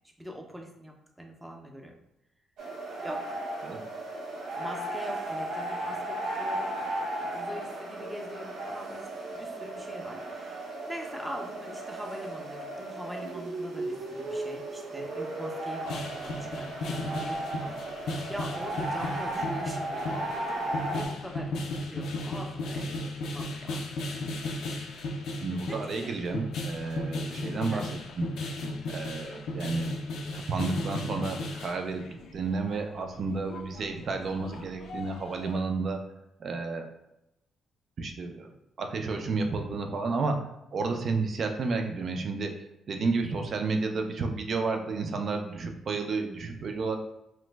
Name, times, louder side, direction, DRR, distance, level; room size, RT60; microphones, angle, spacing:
voice 1, 0.2-1.9 3.0-3.4 4.6-24.2 25.7-26.2 27.7-27.9 40.7-41.0, equal, 10° right, 1 dB, 0.6 m, -43 dB
sound 1, 2.6-21.1, right 1 dB, 80° right, 0.7 m, -35 dB
sound 2, 15.8-35.6, left 2 dB, 80° left, 0.4 m, -36 dB
voice 2, 25.4-27.9 28.2-28.3 28.9-29.9 30.3-36.0 36.4-36.9 38.0-47.0, right 4 dB, 55° right, 4 dB, 0.5 m, -31 dB
3.1 x 2.0 x 3.3 m, 0.85 s
cardioid pair, 90°, 0 cm